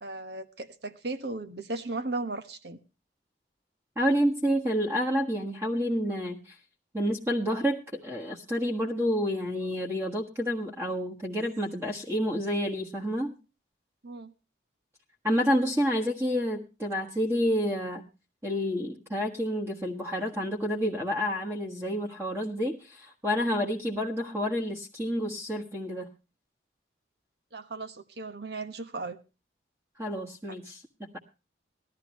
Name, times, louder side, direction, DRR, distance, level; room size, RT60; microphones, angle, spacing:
voice 1, 0.0-2.8 14.0-14.3 27.5-29.2, right 2 dB, 65° right, 10 dB, 1.3 m, -36 dB
voice 2, 3.9-6.6 6.9-13.3 15.2-18.0 18.4-26.1 30.0-31.2, equal, 15° right, 1 dB, 1.5 m, -29 dB
19.5 x 13.0 x 3.1 m, 0.30 s
head